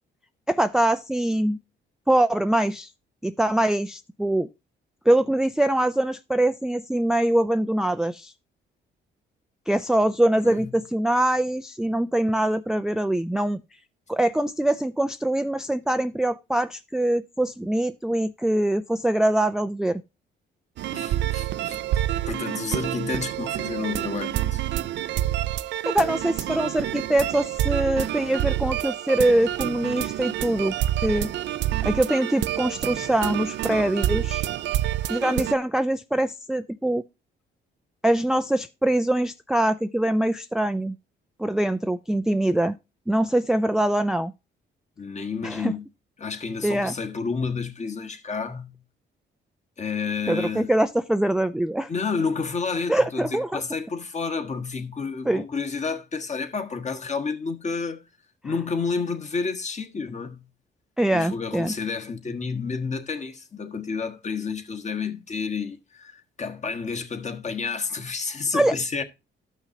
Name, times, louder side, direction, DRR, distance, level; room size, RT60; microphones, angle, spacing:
voice 1, 0.5-1.6 2.1-2.9 3.2-4.5 5.1-8.3 9.7-13.6 14.1-20.0 25.9-30.7 31.0-31.3 31.8-34.5 35.1-37.0 38.0-41.0 41.4-42.7 43.1-44.3 45.4-45.7 46.6-46.9 50.3-51.9 52.9-53.6 55.3-55.5 61.0-61.7 68.5-68.7, right 1 dB, 5° right, 0.4 m, -23 dB
voice 2, 10.4-10.8 20.9-21.8 22.2-24.6 45.0-45.8 46.2-48.8 49.8-50.7 51.9-58.0 58.4-60.5 61.1-69.0, left 5 dB, 35° left, 1.4 m, -30 dB
sound 1, 20.8-35.5, right 13 dB, 65° right, 0.4 m, -28 dB
13.0 x 5.8 x 2.8 m
cardioid pair, 90°, 20 cm